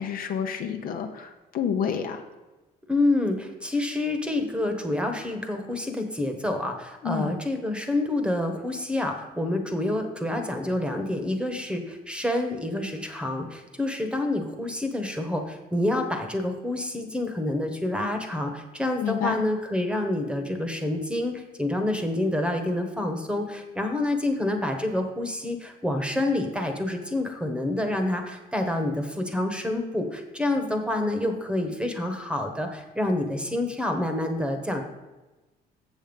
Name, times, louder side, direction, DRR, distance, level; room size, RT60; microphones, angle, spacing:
voice 1, 0.0-2.2 7.0-7.3 19.0-19.4, left 7 dB, 60° left, 5 dB, 1.0 m, -29 dB
voice 2, 2.9-34.8, left 1 dB, 5° right, 5 dB, 1.3 m, -28 dB
7.2 x 7.2 x 5.3 m, 1.1 s
cardioid pair, 110°, 17 cm